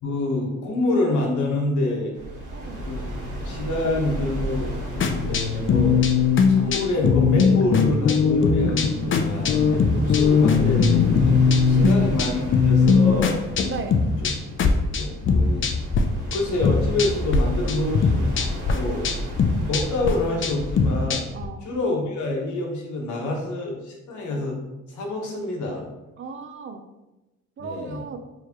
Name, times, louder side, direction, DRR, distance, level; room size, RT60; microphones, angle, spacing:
voice 1, 0.0-2.1 2.8-6.0 6.5-11.4 11.7-13.4 14.2-14.3 14.9-15.7 16.3-18.3 18.7-19.1 19.7-21.2 21.6-24.6 24.9-25.9 27.6-28.0, left 2 dB, 75° left, 0 dB, 1.2 m, -27 dB
sound 1, 2.1-21.1, right 1 dB, 85° right, 1.4 m, -34 dB
voice 2, 2.5-2.9 11.8-12.1 13.7-14.0 21.3-21.7 26.2-26.9 27.6-28.2, right 5 dB, 45° right, 7 dB, 0.5 m, -36 dB
sound 2, 5.0-16.0 16.3-17.4 17.7-21.5, left 5 dB, 40° left, 0.5 m, -20 dB
4.7 x 3.1 x 2.9 m, 0.99 s
cardioid pair, 90°, 30 cm